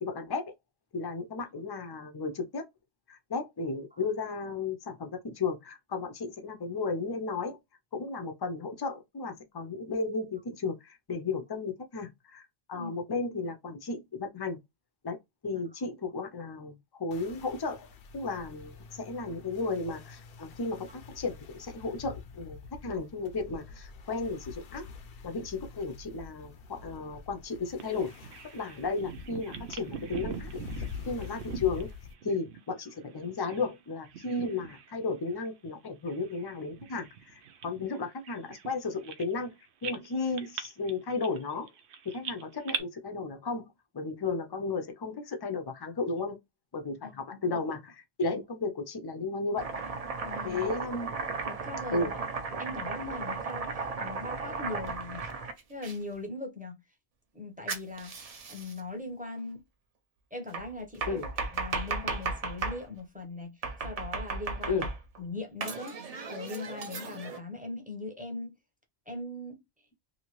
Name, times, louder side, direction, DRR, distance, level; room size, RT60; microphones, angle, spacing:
voice 1, 0.0-0.5 0.9-2.6 3.1-7.6 7.9-14.6 15.0-15.2 15.4-22.6 22.8-24.9 25.2-28.1 28.5-31.9 32.2-37.1 37.3-39.5 39.8-41.7 42.0-46.4 46.7-49.7 50.4-51.1 51.9-52.1 61.1-61.3 64.7-64.8, left 3 dB, 30° left, 0.4 m, -34 dB
sound 1, 17.1-32.1, left 5 dB, 65° left, 0.8 m, -46 dB
Bird vocalization bird call bird song, 27.8-33.8 34.0-34.9 35.3-35.5 36.1-39.5 39.8-42.8, right 7 dB, 85° right, 0.9 m, -42 dB
Domestic sounds home sounds, 49.6-56.0 57.7-58.8 60.5-62.8 63.6-65.2 65.6-67.4, right 4 dB, 45° right, 0.5 m, -35 dB
voice 2, 50.2-50.6 51.4-52.1 52.6-55.3 55.7-56.8 57.3-59.6 60.3-64.9 65.2-68.6 69.1-69.6, left 2 dB, 10° right, 0.7 m, -40 dB
2.8 x 2.7 x 3.0 m
omnidirectional pair, 1.1 m